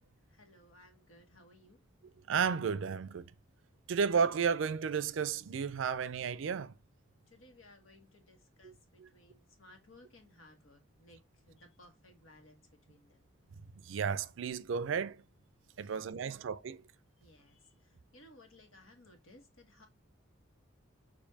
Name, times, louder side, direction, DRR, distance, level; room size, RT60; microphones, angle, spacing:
voice 1, 0.3-1.8 7.3-13.3 15.9-16.4 17.2-19.9, left 1 dB, 85° left, 1.3 m, -60 dB
voice 2, 2.3-3.3 3.9-6.7 8.6-9.1 13.8-15.2 15.8-16.8, right 6 dB, 70° right, 0.4 m, -33 dB
6.6 x 2.5 x 2.7 m
head